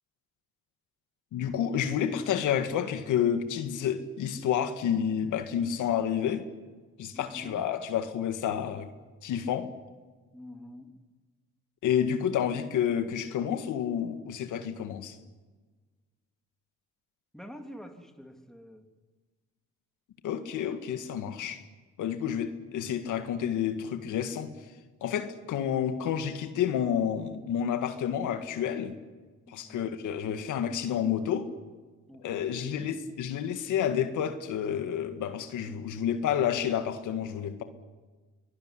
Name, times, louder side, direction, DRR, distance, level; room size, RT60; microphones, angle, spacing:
voice 1, 1.3-6.5 7.0-8.9 9.2-9.7 11.8-15.2 20.2-21.6 22.0-24.5 25.0-29.0 29.5-31.5 32.2-37.6, left 9 dB, 80° left, 8 dB, 1.9 m, -29 dB
voice 2, 7.1-7.7 10.3-10.9 17.3-18.9 21.2-21.5 29.5-30.0 32.1-32.2 32.5-32.9, equal, ahead, 4 dB, 3.3 m, -47 dB
24.0 x 19.0 x 10.0 m, 1.3 s
cardioid pair, 90°, 30 cm